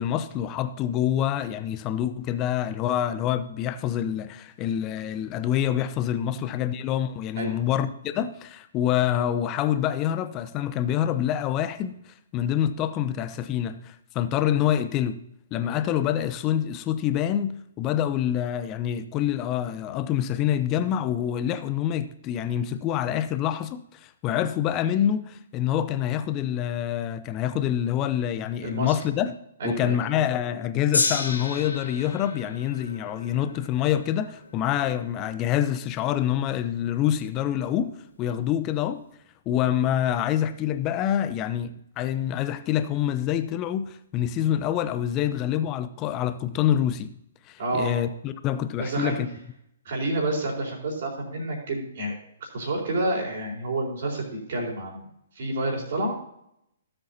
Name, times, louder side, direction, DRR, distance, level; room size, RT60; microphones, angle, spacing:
voice 1, 0.0-15.2 15.5-29.3 29.6-37.9 38.2-39.0 39.5-47.1 47.5-49.3, left 10 dB, 25° left, 0.7 m, -26 dB
voice 2, 6.2-6.5 7.4-7.6 28.6-28.9 29.6-30.0 47.6-47.9 48.8-49.2 49.8-52.2 52.5-55.1 55.4-56.1, right 2 dB, 50° right, 4.2 m, -29 dB
Gong, 30.9-37.3 38.1-38.2, left 3 dB, 70° left, 1.7 m, -33 dB
17.0 x 7.8 x 2.8 m
figure-of-eight pair, 120°, 0 cm